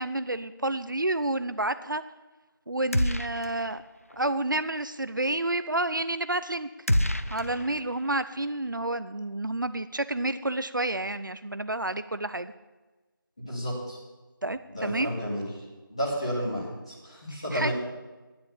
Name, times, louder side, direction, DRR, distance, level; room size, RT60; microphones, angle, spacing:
voice 1, 0.0-2.0 2.7-3.8 4.2-6.7 7.3-12.5 14.4-15.1 17.5-17.7, right 2 dB, 60° right, 12 dB, 0.6 m, -29 dB
sound 1, 2.9-3.8 4.1-4.2 6.9-8.2, left 1 dB, 40° left, 0.4 m, -28 dB
voice 2, 13.5-14.0 14.7-15.6 15.9-17.7, equal, 15° left, -8 dB, 2.7 m, -31 dB
12.0 x 10.0 x 7.1 m, 1.2 s
figure-of-eight pair, 175°, 12 cm